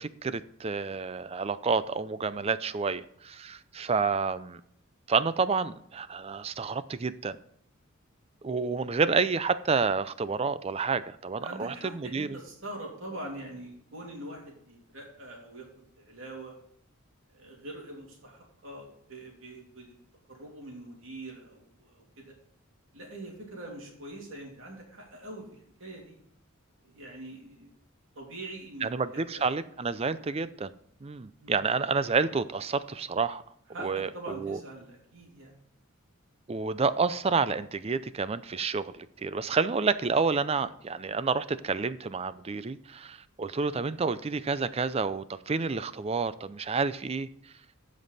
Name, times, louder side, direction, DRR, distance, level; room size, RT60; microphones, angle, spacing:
voice 1, 0.0-4.6 5.1-7.4 8.4-12.4 28.8-30.7 31.0-33.4 33.8-34.6 36.5-47.3, right 4 dB, 30° right, 14 dB, 0.4 m, -29 dB
voice 2, 11.4-16.6 17.3-20.0 20.3-22.3 22.9-25.5 25.8-26.2 26.8-27.7 28.1-29.5 30.2-30.4 31.4-31.6 33.7-35.5, right 1 dB, 65° right, -1 dB, 3.0 m, -43 dB
15.0 x 5.3 x 4.1 m, 0.68 s
head